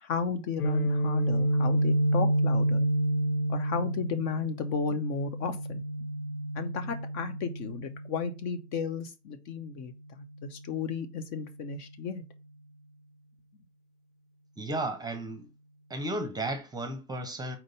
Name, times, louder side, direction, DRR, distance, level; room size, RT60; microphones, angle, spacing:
voice 1, 0.0-2.9 3.5-5.8 6.5-9.9 10.4-12.2, left 5 dB, 40° left, 0.8 m, -34 dB
Guitar, 0.6-8.4, right 1 dB, 70° left, 1.3 m, -29 dB
voice 2, 14.6-15.4 15.9-17.6, right 1 dB, 10° right, 0.9 m, -34 dB
4.4 x 4.0 x 5.3 m
figure-of-eight pair, 95°, 44 cm